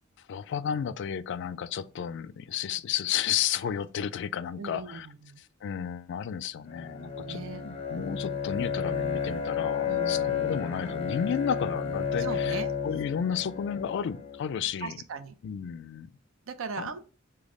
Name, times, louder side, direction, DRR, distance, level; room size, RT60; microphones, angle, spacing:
voice 1, 0.3-5.1 5.6-15.0 15.4-16.1 16.8-17.0, left 8 dB, 60° left, 0.3 m, -32 dB
voice 2, 4.6-5.4 7.2-7.6 9.8-10.6 12.2-12.8 14.8-15.4 16.5-17.0, right 5 dB, 80° right, 0.5 m, -39 dB
Bowed string instrument, 6.6-14.5, left 6 dB, 30° left, 0.6 m, -32 dB
5.1 x 2.3 x 3.6 m
head